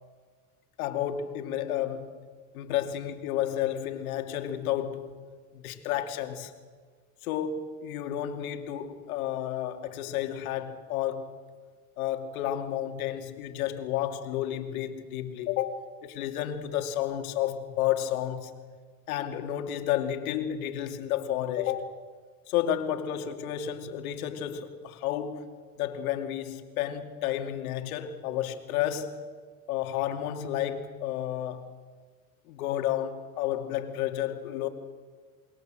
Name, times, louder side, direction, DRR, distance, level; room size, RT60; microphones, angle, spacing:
voice 1, 0.8-2.2 2.5-5.2 5.5-6.5 7.2-11.4 12.0-18.5 19.1-22.0 22.5-25.5 25.8-29.2 29.7-31.6 32.5-34.7, left 11 dB, 80° left, 2.7 m, -31 dB
28.5 x 21.5 x 7.7 m
hypercardioid pair, 95°, 42 cm